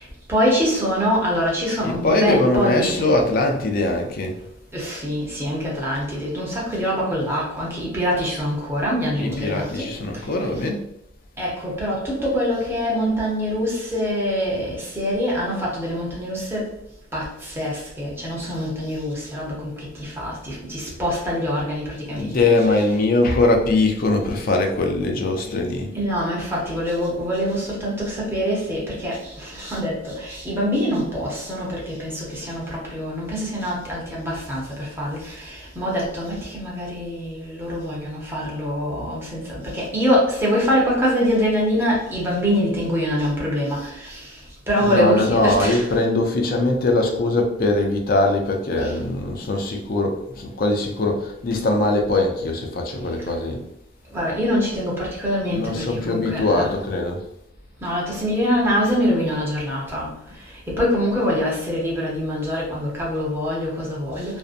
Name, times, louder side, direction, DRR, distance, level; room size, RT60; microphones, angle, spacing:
voice 1, 0.0-3.1 4.7-10.4 11.4-16.7 17.1-22.4 25.9-45.9 48.8-48.9 54.1-56.7 57.8-64.4, equal, 10° right, 0.7 m, -24 dB
voice 2, 1.8-4.3 9.2-10.8 22.1-25.9 44.8-53.6 55.5-57.2, left 2 dB, 45° left, 0.4 m, -21 dB
2.6 x 2.0 x 2.4 m
head